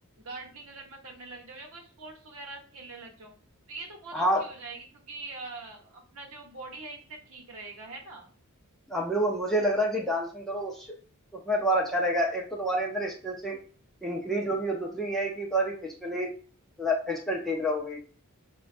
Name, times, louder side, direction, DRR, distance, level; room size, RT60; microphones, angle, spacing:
voice 1, 0.2-3.3 3.7-8.3, right 3 dB, 65° right, 1 dB, 0.9 m, -43 dB
voice 2, 4.1-4.4 8.9-10.9 11.5-13.6 14.0-16.3 16.8-18.0, equal, ahead, -2 dB, 0.5 m, -28 dB
5.1 x 2.3 x 2.5 m, 0.40 s
head